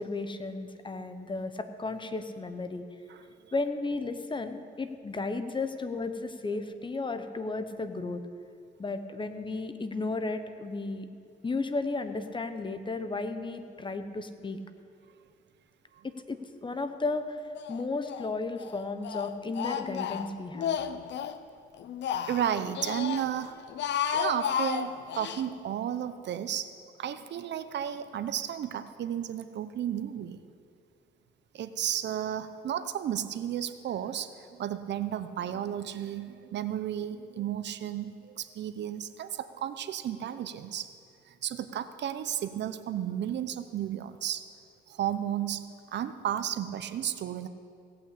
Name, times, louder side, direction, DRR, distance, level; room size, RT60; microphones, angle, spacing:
voice 1, 0.0-2.8 3.5-8.2 8.8-11.1 11.4-14.6 16.0-17.4 17.7-20.8, left 3 dB, 25° left, 9 dB, 0.9 m, -34 dB
voice 2, 3.1-3.5 15.9-16.1 22.3-23.6 24.1-26.7 27.0-30.4 31.5-40.9 41.3-44.4 44.9-47.5, right 10 dB, 60° right, 11 dB, 0.7 m, -33 dB
Speech, 17.6-18.3 18.6-21.4 21.8-23.3 23.6-25.4, left 8 dB, 65° left, 0.7 m, -33 dB
17.0 x 5.9 x 8.4 m, 2.3 s
cardioid pair, 90°, 20 cm